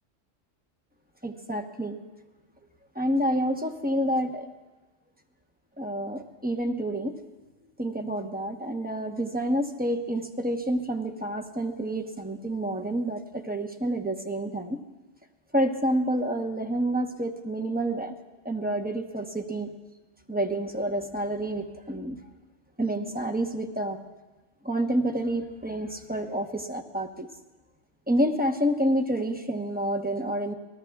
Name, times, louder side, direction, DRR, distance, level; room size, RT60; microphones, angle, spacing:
voice 1, 1.2-2.0 2.9-4.5 5.8-7.2 7.8-14.8 15.5-18.2 18.4-19.7 20.3-22.2 22.8-24.0 24.6-27.3 28.1-30.5, right 1 dB, 10° right, 4 dB, 0.8 m, -28 dB
28.0 x 19.5 x 2.3 m, 1.1 s
omnidirectional pair, 1.3 m